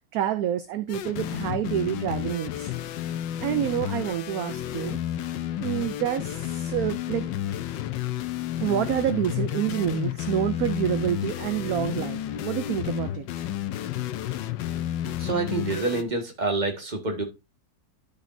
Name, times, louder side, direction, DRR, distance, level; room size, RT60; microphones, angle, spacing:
voice 1, 0.0-2.7 3.4-5.0 5.6-7.3 8.6-13.5, right 11 dB, 70° right, 0.9 m, -28 dB
sound 1, 0.9-16.0, left 12 dB, 85° left, 1.4 m, -31 dB
voice 2, 15.2-17.2, right 3 dB, 25° right, 1.6 m, -27 dB
12.0 x 5.2 x 2.6 m
omnidirectional pair, 1.9 m